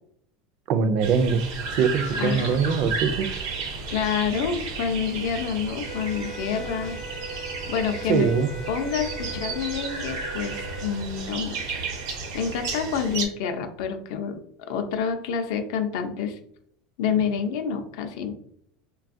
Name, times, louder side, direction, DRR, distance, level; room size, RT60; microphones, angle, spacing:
voice 1, 0.7-1.4 1.7-3.3 8.1-8.5, right 6 dB, 45° right, 10 dB, 0.3 m, -22 dB
sound 1, 1.0-13.2, right 4 dB, 90° right, 0.8 m, -33 dB
voice 2, 2.2-2.6 3.9-7.0 7.7-8.3 8.7-11.8 12.3-14.4 14.7-16.4 17.0-18.3, left 7 dB, 65° left, 6 dB, 0.5 m, -28 dB
sound 2, 5.8-11.0, right 2 dB, 15° left, 0.5 m, -39 dB
3.3 x 2.3 x 2.5 m, 0.66 s
cardioid pair, 175°, 2 cm